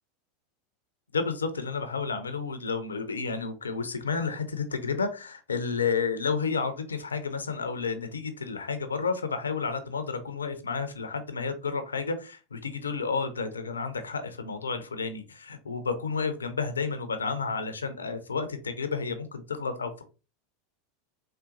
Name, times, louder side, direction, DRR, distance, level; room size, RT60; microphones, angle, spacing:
voice 1, 1.1-20.0, left 5 dB, 85° left, 9 dB, 0.4 m, -31 dB
3.8 x 2.2 x 2.5 m, 0.33 s
figure-of-eight pair, 85°, 0 cm